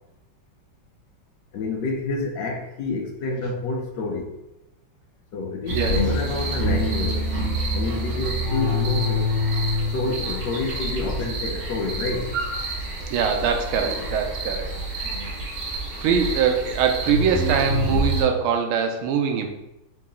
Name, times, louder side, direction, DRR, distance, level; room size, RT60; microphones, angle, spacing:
voice 1, 1.5-4.3 5.3-7.3 7.7-9.3 9.9-12.3, left 3 dB, 70° left, 1 dB, 1.2 m, -28 dB
sound 1, 5.7-18.2, equal, 50° right, 1.3 m, -26 dB
voice 2, 13.1-14.8 15.7-19.5, right 7 dB, 90° right, 4 dB, 1.5 m, -23 dB
3.9 x 2.8 x 3.6 m, 0.93 s
omnidirectional pair, 2.3 m